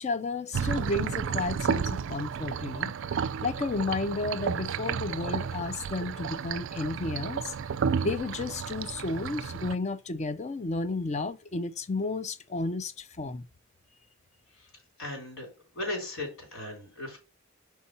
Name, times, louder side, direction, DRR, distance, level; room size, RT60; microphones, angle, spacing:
voice 1, 0.0-2.9 3.4-7.5 8.0-13.5, left 3 dB, 35° left, 0.5 m, -32 dB
sound 1, 0.5-9.7, right 7 dB, 65° right, 0.3 m, -32 dB
voice 2, 15.0-15.5 15.7-17.2, left 2 dB, 80° left, 3.8 m, -36 dB
4.7 x 4.2 x 5.4 m
head